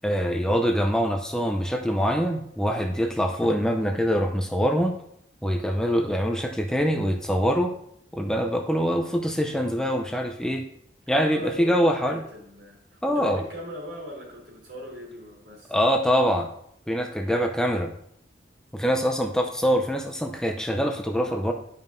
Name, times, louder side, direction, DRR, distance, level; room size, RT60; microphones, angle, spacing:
voice 1, 0.0-5.0 5.4-7.7 8.1-10.7 11.1-12.2 13.0-13.4 15.7-16.5 16.9-17.9 18.7-21.5, equal, 5° left, 3 dB, 0.5 m, -24 dB
voice 2, 11.2-15.9, equal, 75° right, -3 dB, 3.2 m, -40 dB
11.0 x 5.3 x 2.6 m, 0.70 s
head